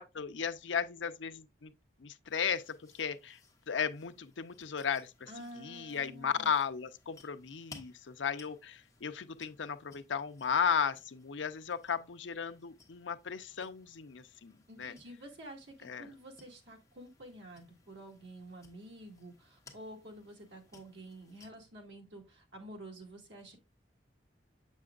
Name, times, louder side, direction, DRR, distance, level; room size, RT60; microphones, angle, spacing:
voice 1, 0.0-1.7 2.0-3.4 3.7-5.3 5.6-14.5 14.8-14.9 15.8-16.1, left 7 dB, 80° left, 0.6 m, -35 dB
sound 1, 2.2-21.5, left 3 dB, 15° left, 1.3 m, -61 dB
voice 2, 5.3-6.5 14.7-23.6, right 1 dB, 80° right, 2.2 m, -50 dB
7.6 x 6.2 x 2.4 m
head